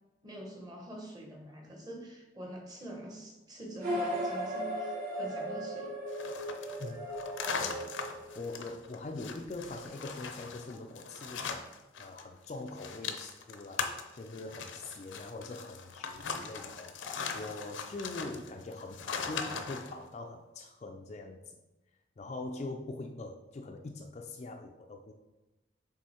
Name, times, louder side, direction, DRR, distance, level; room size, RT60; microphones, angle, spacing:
voice 1, 0.2-5.9, right 1 dB, 20° right, 0 dB, 1.0 m, -45 dB
sound 1, 3.8-8.6, equal, 45° right, 1.9 m, -36 dB
sound 2, 6.1-12.2 12.5-19.9, left 5 dB, 85° left, 0.6 m, -40 dB
voice 2, 8.4-11.7 12.0-13.8 14.2-21.4 22.2-25.1, left 2 dB, 35° left, 4 dB, 0.3 m, -43 dB
6.1 x 3.8 x 4.3 m, 1.1 s
head